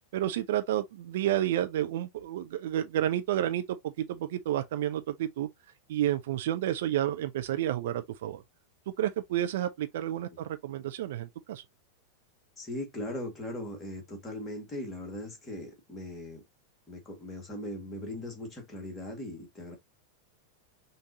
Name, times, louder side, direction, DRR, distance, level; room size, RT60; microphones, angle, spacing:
voice 1, 0.1-5.5 5.9-8.4 8.9-11.6, right 12 dB, 55° right, 0.5 m, -30 dB
voice 2, 12.6-16.4 16.9-19.8, left 1 dB, 15° left, 1.9 m, -39 dB
5.7 x 2.7 x 2.7 m
figure-of-eight pair, 90°, 0 cm